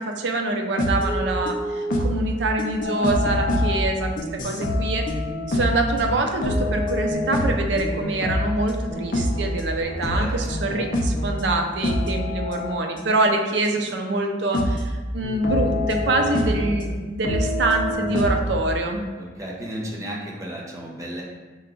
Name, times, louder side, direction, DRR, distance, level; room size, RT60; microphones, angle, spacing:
voice 1, 0.0-5.1 5.5-19.0, right 2 dB, 80° right, 3 dB, 0.5 m, -25 dB
sound 1, 0.8-2.3 2.6-11.5 11.8-12.9 13.9-14.0 14.5-14.9 15.2-16.9 17.2-18.6, left 1 dB, 50° left, 0.5 m, -25 dB
voice 2, 19.2-21.2, equal, 20° right, -3 dB, 0.7 m, -34 dB
4.5 x 2.3 x 3.7 m, 1.3 s
head